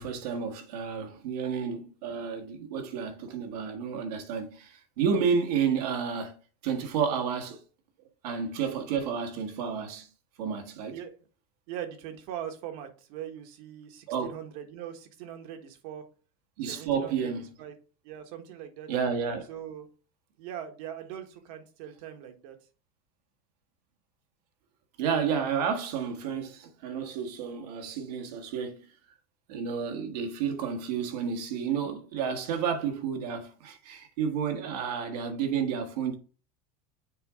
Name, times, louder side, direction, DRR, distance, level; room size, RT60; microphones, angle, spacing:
voice 1, 0.0-6.3 6.6-7.6 8.2-10.1 10.4-10.9 14.1-14.3 16.6-17.5 18.9-19.5 25.0-28.8 29.5-36.2, right 6 dB, 85° right, 1.5 m, -31 dB
voice 2, 10.9-11.3 11.7-16.0 16.7-17.3 17.6-17.7 18.0-18.9 19.5-19.9 20.4-22.6, right 10 dB, 70° right, 1.4 m, -41 dB
6.9 x 4.5 x 3.6 m
supercardioid pair, 130°, 20 cm